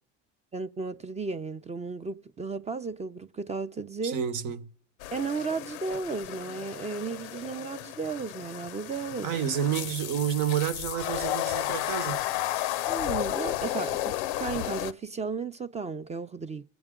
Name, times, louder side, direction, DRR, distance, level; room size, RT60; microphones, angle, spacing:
voice 1, 0.5-4.2 5.1-9.3 12.9-16.6, right 4 dB, 20° right, 0.4 m, -34 dB
voice 2, 4.0-4.7 9.2-12.2, right 9 dB, 75° right, 1.0 m, -29 dB
sound 1, 5.0-14.9, left 15 dB, 90° left, 0.5 m, -33 dB
21.0 x 7.8 x 3.7 m
supercardioid pair, 85°, 33 cm